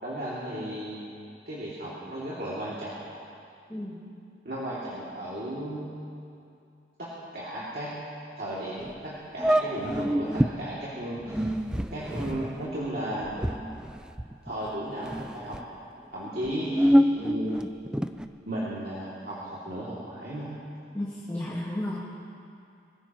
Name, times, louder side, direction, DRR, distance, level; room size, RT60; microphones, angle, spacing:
voice 1, 0.0-1.1 1.5-3.0 4.4-5.9 7.0-8.0 8.4-11.4 11.9-13.4 14.4-15.6 16.1-17.5 18.5-20.5, right 1 dB, 55° right, -8 dB, 2.7 m, -35 dB
voice 2, 3.7-4.0 20.9-22.0, left 1 dB, 15° left, -6 dB, 1.7 m, -33 dB
sound 1, 8.8-8.9 9.4-10.5 11.2-14.7 15.0-15.6 16.3-18.3, equal, 5° right, 0.4 m, -26 dB
24.5 x 15.5 x 3.1 m, 2.5 s
head